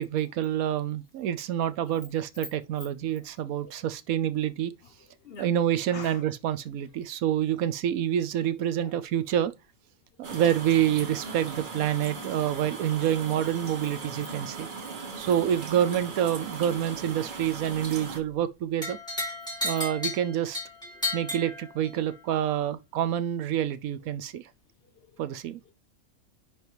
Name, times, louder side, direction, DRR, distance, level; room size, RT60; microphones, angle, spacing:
voice 1, 0.0-4.7 5.4-9.5 10.2-14.7 15.2-19.0 19.6-20.6 21.1-24.5 25.2-25.6, right 10 dB, 80° right, 1.1 m, -27 dB
voice 2, 5.9-6.2 8.8-8.9 10.2-10.4 14.8-15.3 18.2-18.4 20.9-21.0 25.0-25.2, left 5 dB, 55° left, 0.7 m, -47 dB
sound 1, 10.2-18.2, right 4 dB, 40° right, 1.1 m, -38 dB
sound 2, 18.8-22.2, left 2 dB, 5° left, 2.2 m, -33 dB
10.0 x 3.5 x 3.0 m
omnidirectional pair, 1.5 m